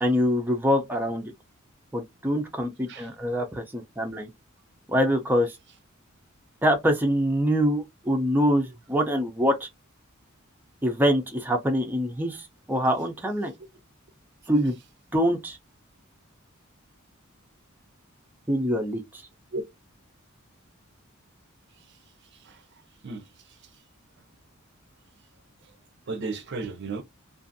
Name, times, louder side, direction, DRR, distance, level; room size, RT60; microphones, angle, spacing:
voice 1, 0.0-1.3 1.9-4.3 4.9-5.6 6.6-9.7 10.8-13.5 14.5-14.8 15.1-15.6 18.5-19.2, equal, 10° right, 0.5 m, -24 dB
voice 2, 22.3-22.6 23.0-23.6 26.1-27.0, right 3 dB, 55° right, 0.5 m, -34 dB
2.5 x 2.5 x 2.5 m
head